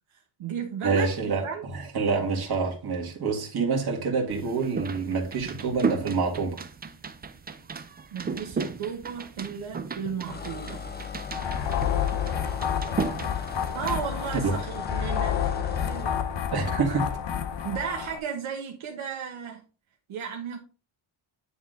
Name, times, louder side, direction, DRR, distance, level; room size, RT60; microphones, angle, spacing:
voice 1, 0.1-1.7 8.1-10.8 13.7-16.2 17.6-19.6 20.1-20.6, right 7 dB, 75° right, 1.2 m, -34 dB
voice 2, 0.8-1.5 1.7-6.6 14.4-14.5 16.5-17.1, right 4 dB, 50° right, 1.9 m, -27 dB
sound 1, 4.3-14.0, right 5 dB, 20° right, 0.3 m, -35 dB
sound 2, 10.3-16.1, left 6 dB, 20° left, 0.7 m, -38 dB
sound 3, 11.3-18.2, left 9 dB, 55° left, 0.9 m, -29 dB
9.7 x 3.6 x 3.7 m
wide cardioid pair, 155°, 49 cm